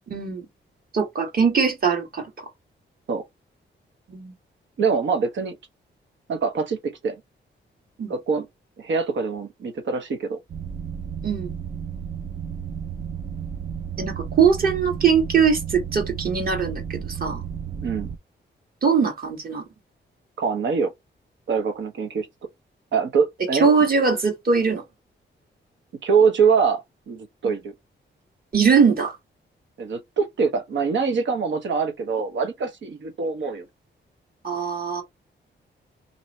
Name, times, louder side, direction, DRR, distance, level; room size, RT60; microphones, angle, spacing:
voice 1, 0.1-0.4 0.9-2.3 4.1-4.3 8.0-8.1 11.2-11.5 14.0-17.4 18.8-19.6 23.5-24.8 27.4-27.5 28.5-29.2 34.4-35.0, right 6 dB, 50° right, 1.6 m, -21 dB
voice 2, 4.8-5.6 6.3-7.2 8.1-8.5 8.8-10.4 17.8-18.1 20.4-20.9 21.5-22.3 22.9-23.7 26.0-27.7 29.8-33.7, right 5 dB, 75° right, 1.0 m, -24 dB
sound 1, 10.5-18.2, right 7 dB, 35° right, 0.4 m, -33 dB
2.9 x 2.6 x 4.2 m
wide cardioid pair, 140°, 19 cm